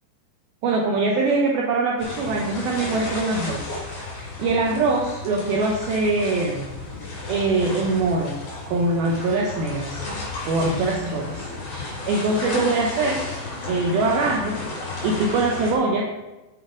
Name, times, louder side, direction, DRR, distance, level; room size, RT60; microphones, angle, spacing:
voice 1, 0.6-3.8 4.1-6.7 7.3-8.4 8.7-10.0 10.5-13.2 13.7-14.6 15.0-16.1, right 3 dB, 70° right, -1 dB, 2.4 m, -23 dB
sound 1, 2.0-15.7, left 2 dB, 45° left, 4.0 m, -33 dB
8.2 x 8.1 x 5.0 m, 1.0 s
omnidirectional pair, 5.3 m